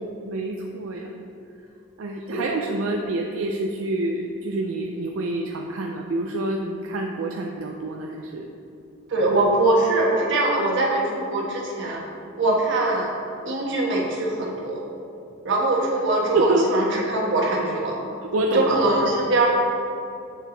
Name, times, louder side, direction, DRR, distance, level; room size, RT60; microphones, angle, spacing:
voice 1, 0.3-1.1 2.0-8.5 16.3-16.7 18.2-18.7, right 2 dB, 80° right, 1 dB, 0.5 m, -27 dB
voice 2, 9.1-12.0 12.4-13.1 13.5-14.8 15.4-18.0 18.5-19.5, right 2 dB, 65° right, -2 dB, 1.3 m, -22 dB
7.7 x 4.7 x 3.9 m, 2.7 s
head